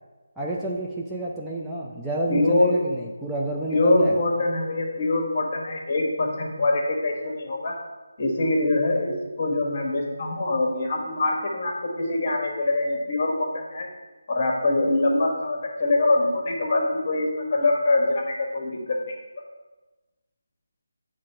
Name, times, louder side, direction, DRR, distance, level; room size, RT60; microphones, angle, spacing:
voice 1, 0.4-4.2, right 2 dB, 5° right, -6 dB, 0.5 m, -29 dB
voice 2, 2.3-2.8 3.7-7.7 8.2-13.9 14.3-19.1, left 2 dB, 40° left, 1 dB, 1.3 m, -24 dB
7.5 x 3.7 x 5.6 m, 1.2 s
figure-of-eight pair, 160°, 0 cm